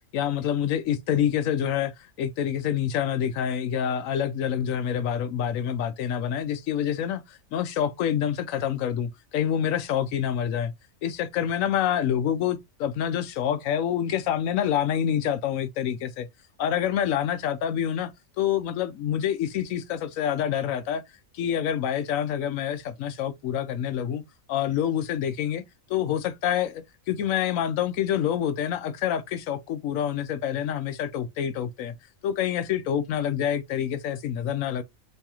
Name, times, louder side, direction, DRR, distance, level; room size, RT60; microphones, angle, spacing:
voice 1, 0.1-1.9 2.2-10.7 11.0-16.3 16.6-18.1 18.4-21.0 21.3-24.2 24.5-25.6 25.9-31.9 32.2-34.8, left 9 dB, 75° left, 1.0 m, -27 dB
3.5 x 3.2 x 2.8 m
omnidirectional pair, 1.5 m